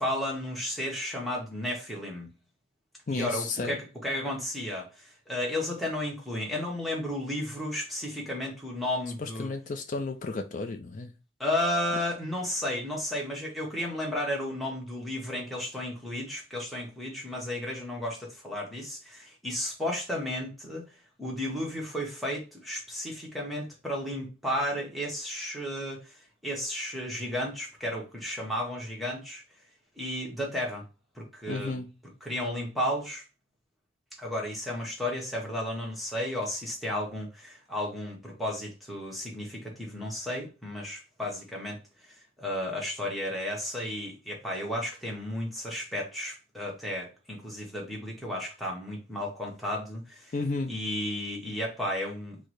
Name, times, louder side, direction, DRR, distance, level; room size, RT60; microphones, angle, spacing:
voice 1, 0.0-2.3 3.1-9.5 11.4-20.9 21.2-26.2 26.4-29.4 30.0-30.8 31.2-31.8 32.2-33.2 34.2-41.8 42.1-50.3 50.7-52.4, left 1 dB, ahead, 0.9 m, -33 dB
voice 2, 3.1-3.8 9.2-11.1 31.5-31.9 50.3-50.8, left 3 dB, 40° left, 0.4 m, -32 dB
4.5 x 2.1 x 4.6 m
head